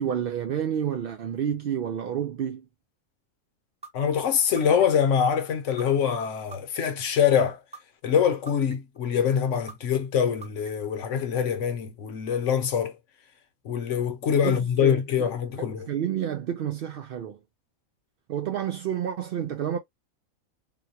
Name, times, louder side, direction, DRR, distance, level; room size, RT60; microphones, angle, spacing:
voice 1, 0.0-2.7 14.4-15.3 15.6-17.4 18.3-19.8, right 9 dB, 75° right, 0.5 m, -30 dB
sound 1, 3.8-3.9 4.6-5.1 5.8-5.9 6.5-7.0 7.7-7.8 8.5-9.0 9.7-9.8 10.4-10.9, right 4 dB, 5° right, 0.7 m, -43 dB
voice 2, 3.9-7.6 8.0-12.9 13.6-15.9, left 8 dB, 65° left, 1.0 m, -24 dB
3.9 x 2.2 x 2.7 m
omnidirectional pair, 1.5 m